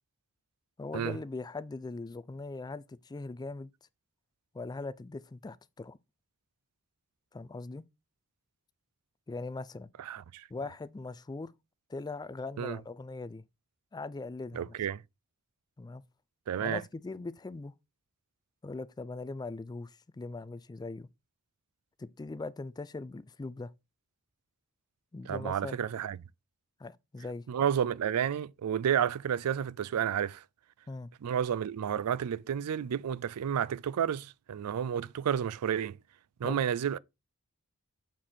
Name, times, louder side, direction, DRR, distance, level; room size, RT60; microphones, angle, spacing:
voice 1, 0.8-3.7 4.5-6.0 7.3-7.8 9.3-9.9 10.5-11.5 11.9-13.4 13.9-14.8 15.8-16.0 16.6-17.7 18.6-21.1 22.0-23.7 25.1-25.8 26.8-27.4 30.9-31.1 36.4-36.6, left 3 dB, 20° left, 0.3 m, -40 dB
voice 2, 10.0-10.5 12.6-12.8 14.5-15.0 16.5-16.8 25.3-26.2 27.5-30.4 31.2-36.0 36.4-37.0, right 8 dB, 90° right, 0.4 m, -31 dB
7.5 x 4.4 x 4.2 m
head